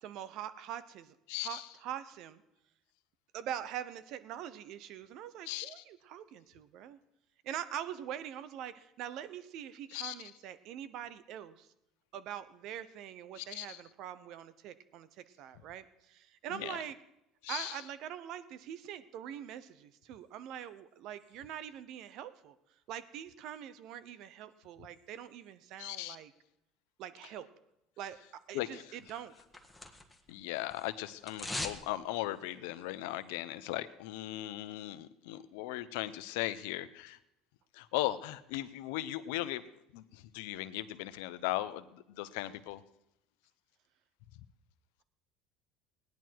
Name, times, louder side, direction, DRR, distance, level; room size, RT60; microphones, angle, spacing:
voice 1, 0.0-2.4 3.3-7.0 7.4-11.7 12.1-17.0 17.5-22.6 22.9-26.3 27.0-27.5 28.0-28.2 28.5-29.3, right 10 dB, 65° right, 14 dB, 0.9 m, -43 dB
voice 2, 1.3-1.6 5.5-5.8 9.9-10.1 13.4-13.8 16.5-16.8 17.4-17.8 25.8-26.2 28.5-28.8 30.3-37.2 37.8-39.6 39.9-42.8, left 15 dB, 85° left, 13 dB, 0.7 m, -38 dB
sound 1, 29.1-30.3 30.6-31.9 32.2-32.3, left 2 dB, 5° left, 1.5 m, -41 dB
17.5 x 10.5 x 4.7 m, 0.85 s
supercardioid pair, 105°, 0 cm